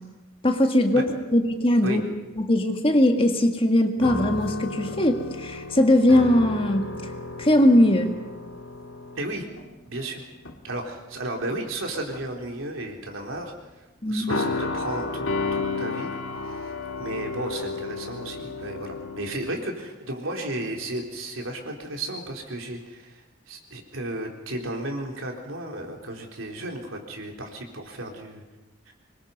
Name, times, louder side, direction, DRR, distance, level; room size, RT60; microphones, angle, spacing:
voice 1, 0.4-1.0 1.3-2.0 2.4-6.8 7.4-8.1 14.0-14.3, left 1 dB, 30° left, 5 dB, 1.8 m, -20 dB
sound 1, 4.0-10.1 10.4-10.7 11.7-12.4 14.3-19.5, left 3 dB, 80° left, 2.0 m, -32 dB
voice 2, 9.2-9.5 9.9-10.2 10.6-15.2 15.5-16.7 17.0-28.4 28.9-29.0, right 1 dB, 85° right, 1 dB, 3.9 m, -34 dB
25.0 x 22.0 x 5.4 m, 1.1 s
head